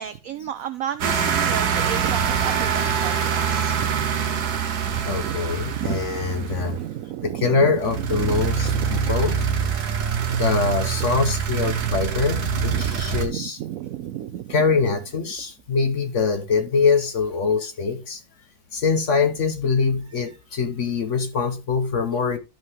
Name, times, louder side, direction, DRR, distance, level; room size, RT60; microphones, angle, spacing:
voice 1, 0.0-3.9 5.2-9.2 10.2-10.4 10.6-11.1 12.7-14.5, right 11 dB, 80° right, 0.7 m, -33 dB
sound 1, 1.0-6.9 7.8-13.3, right 7 dB, 60° right, 1.6 m, -24 dB
voice 2, 5.0-6.8 7.2-13.6 14.5-18.2 18.7-22.4, left 5 dB, 50° left, 1.0 m, -24 dB
12.0 x 5.5 x 3.0 m
omnidirectional pair, 2.0 m